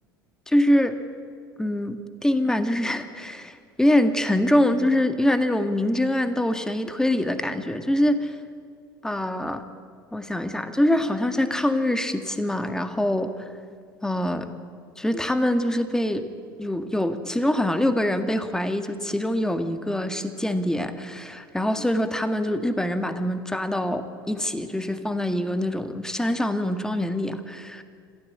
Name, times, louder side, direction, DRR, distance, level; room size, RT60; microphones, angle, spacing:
voice 1, 0.5-1.0 1.6-8.4 9.0-9.6 10.1-13.5 14.0-14.5 15.0-16.3 16.6-27.8, left 1 dB, 5° left, 9 dB, 1.8 m, -24 dB
26.0 x 15.5 x 8.7 m, 2.1 s
figure-of-eight pair, 75°, 12 cm